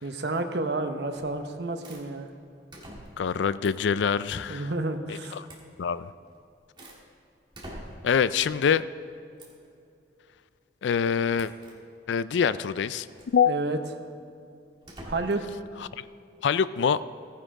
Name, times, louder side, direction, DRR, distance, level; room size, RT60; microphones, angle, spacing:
voice 1, 0.0-2.3 4.5-5.4 13.5-13.8 15.1-15.5, right 2 dB, 65° right, 7 dB, 0.8 m, -30 dB
sound 1, 1.1-1.4 1.8-2.1 2.7-3.3 3.6-3.9 5.5-5.7 6.3-7.0 7.5-8.2 9.4-9.7 11.3-11.8 13.1-13.4 14.8-15.5, right 1 dB, 25° right, 1.6 m, -45 dB
voice 2, 3.2-4.7 5.3-5.5 5.8-6.1 8.0-8.9 10.8-11.5 12.1-13.1 13.3-13.6 16.0-16.1 16.4-17.0, left 7 dB, 75° left, 16 dB, 0.4 m, -24 dB
15.0 x 9.9 x 3.7 m, 2.7 s
head